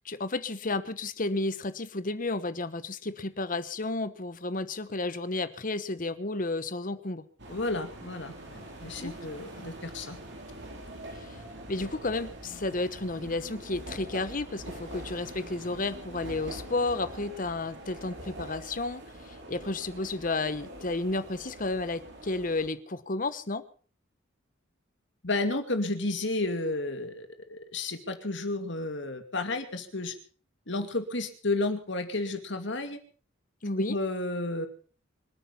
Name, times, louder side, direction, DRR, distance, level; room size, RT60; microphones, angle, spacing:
voice 1, 0.0-7.2 9.0-9.1 11.2-11.4 11.7-23.6 33.6-34.0, left 2 dB, 40° left, 14 dB, 1.1 m, -32 dB
sound 1, 7.4-22.7, right 1 dB, 60° right, 4.8 m, -44 dB
voice 2, 7.5-10.2 25.2-30.1 30.7-33.0 33.9-34.7, left 2 dB, 60° left, 7 dB, 2.5 m, -32 dB
26.0 x 9.2 x 5.6 m, 0.42 s
head